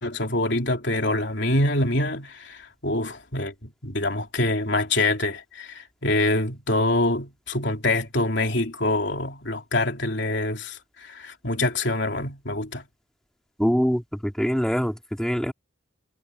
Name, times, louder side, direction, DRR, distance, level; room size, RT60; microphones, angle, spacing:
voice 1, 0.0-12.9, left 2 dB, 65° left, 3.3 m, -25 dB
voice 2, 13.6-15.5, equal, 5° left, 2.8 m, -24 dB
head